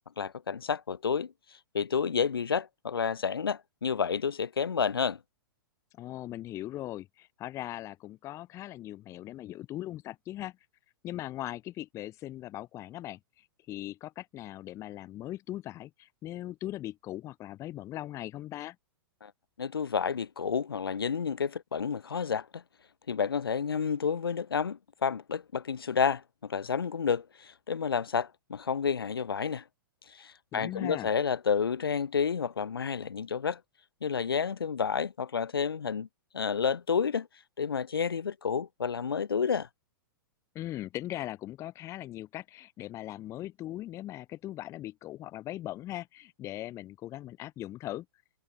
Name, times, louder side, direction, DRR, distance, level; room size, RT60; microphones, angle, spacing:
voice 1, 0.2-1.3 1.7-5.2 19.2-19.3 19.6-22.6 23.1-29.6 30.1-33.6 34.0-36.1 36.3-37.3 37.6-39.7, left 6 dB, 80° left, 0.7 m, -30 dB
voice 2, 5.9-10.6 11.0-18.8 30.5-31.1 40.5-48.1, left 14 dB, 25° left, 0.4 m, -39 dB
figure-of-eight pair, 110°, 12 cm